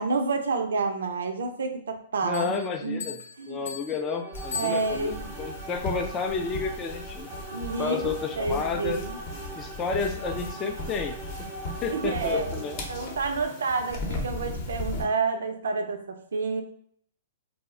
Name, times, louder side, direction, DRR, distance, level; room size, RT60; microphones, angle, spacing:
voice 1, 0.0-3.1 3.4-3.7 4.5-5.3 7.5-9.2 11.8-12.6 12.9-16.6, right 4 dB, 85° right, 5 dB, 0.4 m, -29 dB
voice 2, 2.2-3.2 3.5-7.3 7.8-9.0 9.6-11.5 11.8-12.8, left 5 dB, 25° left, 5 dB, 0.4 m, -31 dB
Bell, 2.3-5.4, left 7 dB, 75° left, 0.6 m, -40 dB
sound 1, 3.9-13.4, right 3 dB, 30° right, 0.5 m, -42 dB
sound 2, 4.3-15.1, left 2 dB, 40° left, 0.7 m, -37 dB
2.3 x 2.0 x 3.6 m, 0.63 s
hypercardioid pair, 135°, 0 cm